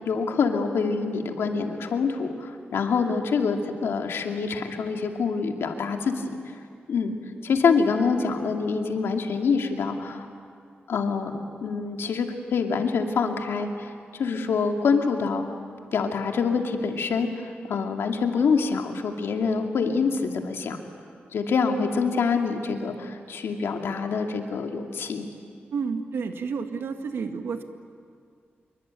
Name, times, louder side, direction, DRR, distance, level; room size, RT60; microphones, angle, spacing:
voice 1, 0.0-6.4 6.9-7.2 7.4-10.3 10.9-11.3 11.6-13.7 14.2-15.5 15.9-20.8 21.3-25.3, left 5 dB, 90° left, 3 dB, 2.5 m, -25 dB
voice 2, 25.7-27.6, right 5 dB, 80° right, 6 dB, 2.0 m, -30 dB
26.5 x 23.5 x 9.1 m, 2.2 s
wide cardioid pair, 135°, 4 cm